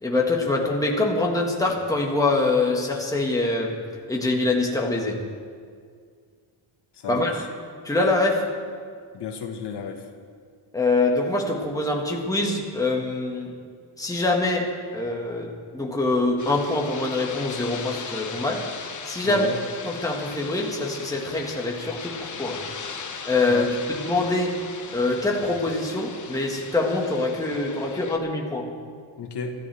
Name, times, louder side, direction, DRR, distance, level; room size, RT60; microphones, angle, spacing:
voice 1, 0.0-3.8 4.1-5.2 7.1-7.3 7.8-8.5 10.7-13.5 14.0-18.6 19.1-19.5 19.9-22.6 23.3-24.6 24.9-28.7, left 2 dB, 5° left, -1 dB, 1.7 m, -24 dB
voice 2, 6.9-7.5 9.1-10.1 19.2-19.6 23.5-23.7 29.2-29.5, left 7 dB, 55° left, 3 dB, 1.5 m, -32 dB
sound 1, 16.4-28.2, left 6 dB, 35° left, 1.3 m, -38 dB
25.5 x 13.5 x 3.5 m, 2.1 s
cardioid pair, 150°, 49 cm